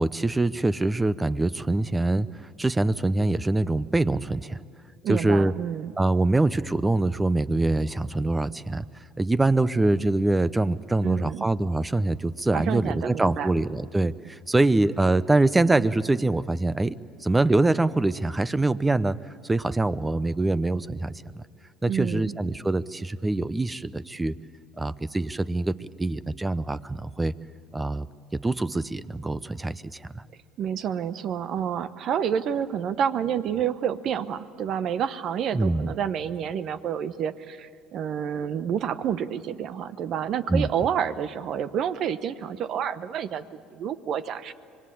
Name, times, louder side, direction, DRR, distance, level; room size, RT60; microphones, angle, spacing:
voice 1, 0.0-4.6 5.1-5.5 6.0-8.8 9.2-16.9 17.2-19.2 19.4-21.4 21.8-24.4 24.8-27.3 27.7-28.1 28.4-30.2 35.5-35.9 40.5-40.7, right 2 dB, 15° right, 17 dB, 0.7 m, -24 dB
voice 2, 5.0-5.9 11.0-11.4 12.5-13.5 21.8-22.3 30.6-44.5, right 8 dB, 55° right, 14 dB, 1.0 m, -29 dB
25.5 x 21.5 x 8.5 m, 2.2 s
hypercardioid pair, 65°, 0 cm